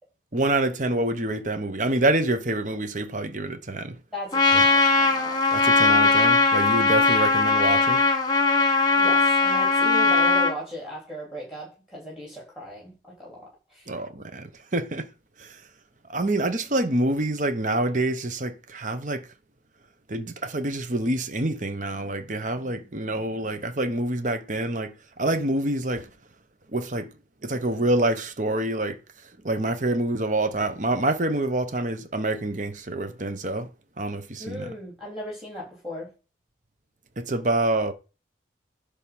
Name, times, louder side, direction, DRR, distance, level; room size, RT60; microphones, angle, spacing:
voice 1, 0.3-4.0 4.5-4.6 5.5-8.0 13.9-15.1 15.4-15.6 16.1-19.3 20.1-26.1 26.7-27.1 27.4-29.0 29.4-33.7 34.0-34.7 37.2-37.9, right 2 dB, 40° right, 1.0 m, -26 dB
voice 2, 4.1-5.7 9.0-12.9 13.2-13.9 34.4-36.1, left 1 dB, 5° right, 4.0 m, -37 dB
Trumpet, 4.3-10.5, left 4 dB, 20° left, 1.7 m, -20 dB
10.5 x 3.6 x 7.1 m
head